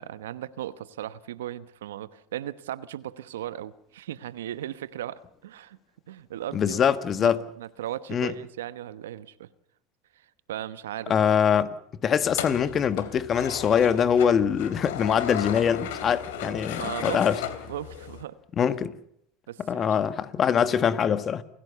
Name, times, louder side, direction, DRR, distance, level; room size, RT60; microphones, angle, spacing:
voice 1, 0.0-5.8 6.1-6.8 7.1-9.5 10.2-11.1 16.8-17.2 17.7-18.4 19.5-19.9, right 12 dB, 80° right, 1.1 m, -37 dB
voice 2, 6.5-7.4 8.1-8.3 11.1-11.8 12.0-17.4 18.6-18.9 19.6-21.4, left 7 dB, 35° left, 1.6 m, -23 dB
sound 1, 12.2-18.2, left 9 dB, 75° left, 2.9 m, -35 dB
28.5 x 16.0 x 6.9 m
hypercardioid pair, 85°, 0 cm